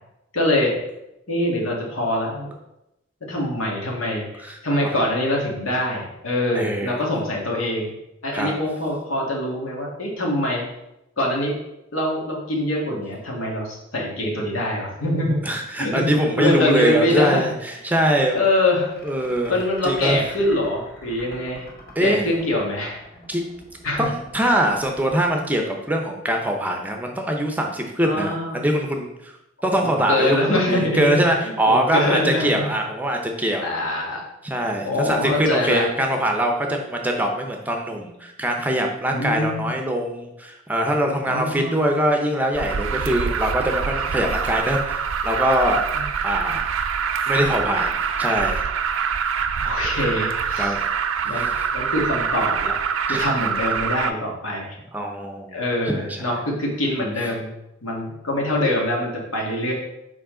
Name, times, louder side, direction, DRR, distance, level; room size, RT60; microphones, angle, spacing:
voice 1, 0.3-0.8 1.3-2.5 3.2-7.9 8.2-10.6 11.2-11.5 11.9-15.4 15.8-16.1 16.4-17.4 18.3-18.9 19.5-21.7 22.0-23.2 23.8-24.1 28.0-28.6 29.6-32.6 33.6-34.2 34.8-35.9 39.1-39.7 41.3-41.8 45.9-46.0 49.6-50.7 51.2-52.8 53.1-54.8 55.5-57.5 57.8-59.7, left 1 dB, 85° left, -2 dB, 1.9 m, -24 dB
voice 2, 4.4-4.9 6.5-7.0 8.3-8.5 15.4-18.4 19.0-19.5 19.8-20.2 22.0-22.3 23.3-23.4 24.0-29.3 29.6-33.7 34.4-45.8 46.2-46.7 47.3-48.6 50.6-50.8 53.1-53.3 54.9-56.3, equal, 10° right, 2 dB, 0.6 m, -23 dB
sound 1, 17.7-26.4, left 1 dB, 45° left, 2.2 m, -46 dB
Alarm, 42.5-54.1, right 6 dB, 75° right, 0.4 m, -25 dB
7.0 x 5.0 x 3.8 m, 0.89 s
head